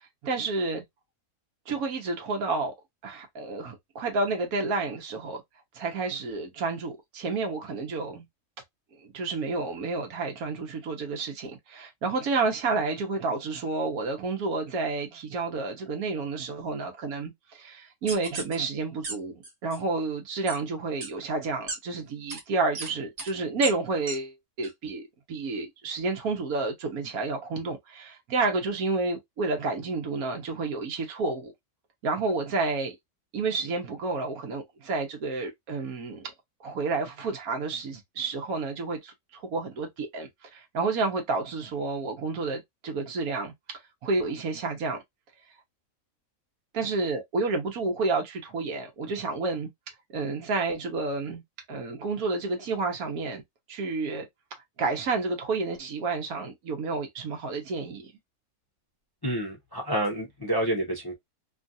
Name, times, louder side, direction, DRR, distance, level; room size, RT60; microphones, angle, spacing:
voice 1, 0.2-0.8 1.7-2.7 3.0-5.4 5.7-8.2 9.0-19.3 19.6-25.0 25.3-31.5 32.0-32.9 33.3-36.3 36.6-43.5 44.0-45.0 46.7-49.7 50.1-51.4 51.7-53.4 53.7-54.3 54.8-58.1, right 3 dB, 75° right, 1.4 m, -30 dB
sound 1, 18.1-18.6 19.0-19.1 19.4-19.8 20.5-20.6 21.0-21.1 21.7-21.8 22.3-22.4 22.8-22.9 23.2-23.3 23.6-23.7 24.1-24.2 24.6-24.7, right 2 dB, 50° right, 1.4 m, -34 dB
voice 2, 59.2-61.1, right 1 dB, 25° left, 0.5 m, -28 dB
3.1 x 2.4 x 2.5 m
omnidirectional pair, 1.6 m